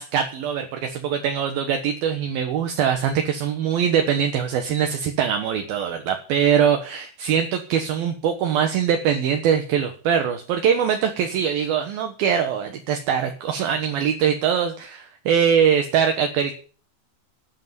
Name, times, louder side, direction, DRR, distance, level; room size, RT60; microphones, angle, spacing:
voice 1, 0.0-16.5, right 8 dB, 70° right, 5 dB, 2.9 m, -22 dB
12.5 x 8.3 x 9.5 m, 0.41 s
omnidirectional pair, 4.8 m